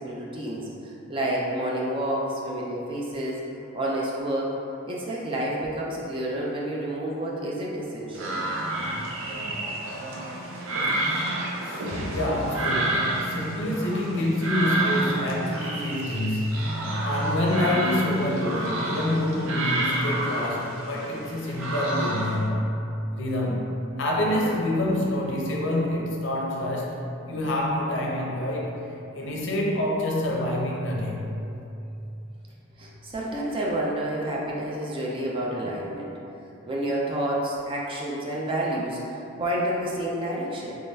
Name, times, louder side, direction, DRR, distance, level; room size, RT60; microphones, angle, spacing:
voice 1, 0.0-3.4 3.7-4.5 4.8-8.4 32.8-36.1 36.7-40.7, right 1 dB, 25° right, -4 dB, 0.4 m, -29 dB
sound 1, 8.1-22.4, right 1 dB, 75° right, 0.6 m, -29 dB
voice 2, 11.6-22.8 23.1-27.0 27.3-28.9 29.1-31.4, left 1 dB, 60° left, -2 dB, 0.5 m, -27 dB
3.6 x 3.3 x 2.6 m, 2.8 s
head